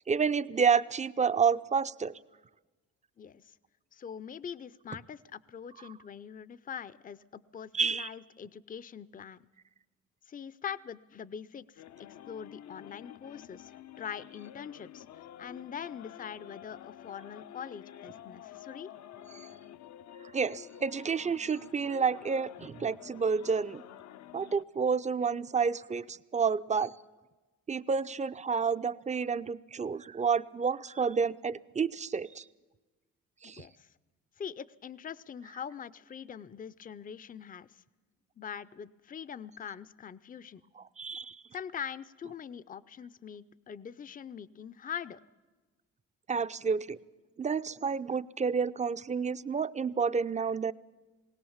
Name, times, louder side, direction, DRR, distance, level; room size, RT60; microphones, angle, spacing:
voice 1, 0.1-2.1 5.8-5.9 7.7-8.1 19.3-19.5 20.3-23.8 24.3-26.9 27.7-32.4 33.4-33.7 40.8-41.4 46.3-47.0 47.4-50.7, right 6 dB, 25° right, 15 dB, 0.5 m, -30 dB
voice 2, 3.2-3.6 3.9-9.4 10.3-18.9 33.6-33.9 34.4-37.8 38.4-40.6 41.5-45.2, left 8 dB, 30° left, 19 dB, 0.6 m, -43 dB
sound 1, 11.8-24.6, left 11 dB, 65° left, 0.7 m, -49 dB
20.5 x 18.0 x 7.2 m, 1.2 s
cardioid pair, 90°, 30 cm